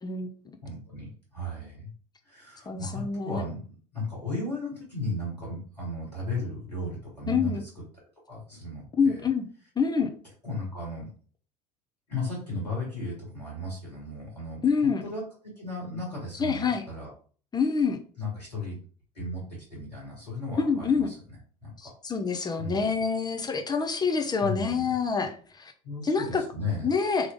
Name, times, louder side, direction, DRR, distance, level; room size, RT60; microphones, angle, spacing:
voice 1, 0.0-0.6 2.7-3.4 7.3-7.6 8.9-9.5 9.8-10.1 14.6-15.0 16.4-16.8 17.5-18.0 20.6-21.1 21.8-25.7 26.0-26.4 26.8-27.3, left 5 dB, 20° left, 5 dB, 0.9 m, -26 dB
voice 2, 0.6-1.9 2.2-7.8 8.3-9.2 10.4-11.1 12.1-14.6 15.0-17.1 18.2-18.8 19.1-19.4 19.7-21.9 22.6-23.0 24.4-24.9 25.8-26.9, left 2 dB, 90° left, -5 dB, 2.2 m, -35 dB
3.9 x 3.1 x 3.6 m, 0.42 s
figure-of-eight pair, 65°, 20 cm